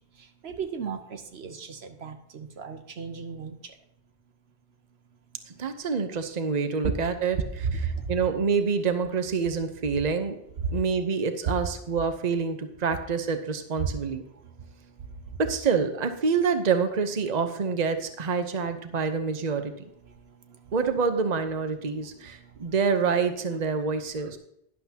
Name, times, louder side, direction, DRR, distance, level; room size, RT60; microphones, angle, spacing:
voice 1, 0.4-3.5 6.8-6.9 7.6-8.2 10.6-10.8, right 5 dB, 75° right, 7 dB, 1.1 m, -33 dB
voice 2, 5.5-10.4 10.7-14.2 15.4-19.7 20.7-24.4, right 5 dB, 40° right, 8 dB, 1.0 m, -27 dB
11.5 x 11.0 x 2.9 m, 0.76 s
omnidirectional pair, 1.1 m